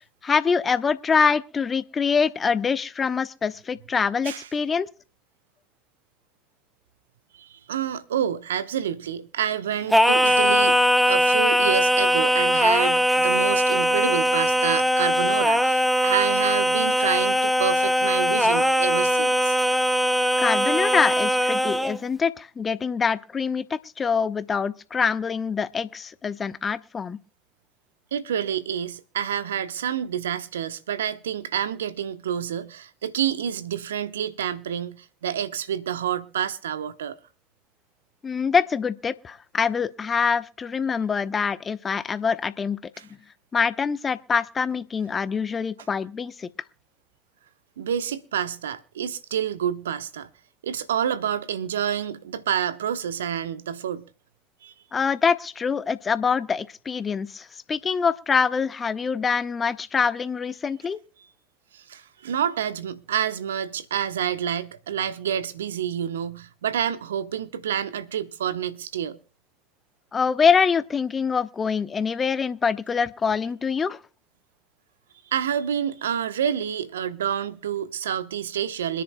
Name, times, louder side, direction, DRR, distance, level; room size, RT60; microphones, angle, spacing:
voice 1, 0.2-4.9 20.4-27.2 38.2-42.8 43.5-46.5 54.9-61.0 70.1-74.0, left 6 dB, 25° left, 0.9 m, -24 dB
voice 2, 7.4-10.8 11.1-19.5 28.1-37.2 43.0-43.1 47.8-50.3 50.6-54.0 54.6-54.7 61.7-69.2 75.3-79.0, right 9 dB, 75° right, 0.9 m, -28 dB
Singing, 9.9-22.0, equal, ahead, 0.7 m, -21 dB
26.0 x 10.5 x 2.2 m
figure-of-eight pair, 70°, 0 cm